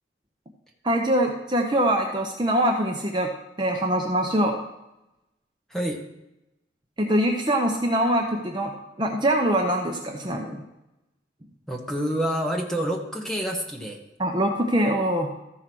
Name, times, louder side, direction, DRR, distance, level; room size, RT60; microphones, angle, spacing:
voice 1, 0.8-3.3 3.6-4.6 7.0-10.6 14.2-15.3, right 1 dB, 25° right, 2 dB, 0.7 m, -23 dB
voice 2, 5.7-6.0 11.7-14.0, equal, ahead, 0 dB, 1.1 m, -28 dB
13.5 x 4.8 x 6.0 m, 0.92 s
head